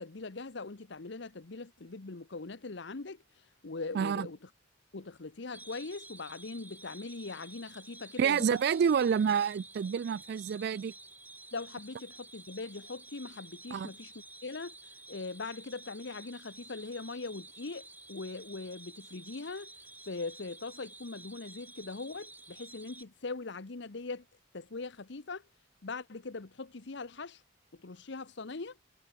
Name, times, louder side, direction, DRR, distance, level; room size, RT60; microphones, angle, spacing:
voice 1, 0.0-3.2 3.6-4.4 4.9-8.6 11.5-14.1 14.4-19.7 20.1-24.2 24.5-25.4 25.8-27.4 27.7-28.8, left 3 dB, 65° left, 1.0 m, -41 dB
voice 2, 3.9-4.3 8.2-10.9 13.7-13.9, right 7 dB, 60° right, 0.3 m, -28 dB
sound 1, 5.5-23.0, right 2 dB, 10° right, 1.9 m, -52 dB
head